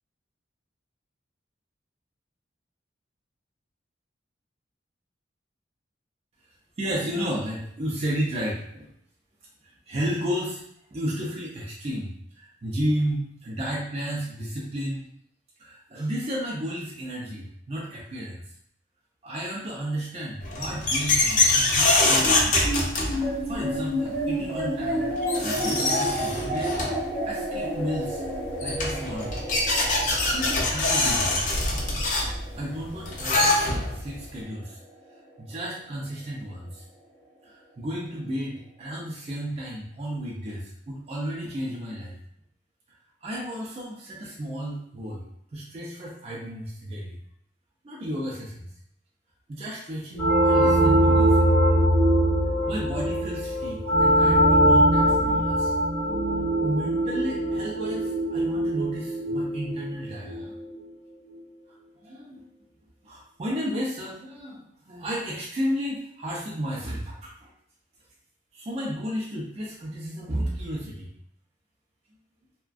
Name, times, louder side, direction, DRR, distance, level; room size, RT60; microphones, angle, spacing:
voice 1, 6.8-8.9 9.6-10.6 10.9-15.1 15.6-18.4 19.2-22.6 23.1-26.7 27.2-28.2 28.6-29.4 30.3-31.5 32.5-33.6 33.9-34.8 35.4-36.8 37.4-42.2 43.2-45.2 45.5-47.2 47.8-48.7 49.5-51.5 52.6-55.7 56.6-60.5 62.0-62.5 63.0-67.5 68.5-71.1, equal, 35° right, -4 dB, 0.4 m, -33 dB
sound 1, 20.4-23.5 24.8-24.9 25.2-27.1 28.2-28.3 28.6-34.1, left 2 dB, 45° left, 0.5 m, -24 dB
sound 2, 22.2-34.9, equal, 10° right, 0.8 m, -31 dB
sound 3, 50.1-60.6, right 1 dB, 85° left, 0.9 m, -22 dB
2.3 x 2.1 x 2.4 m, 0.69 s
head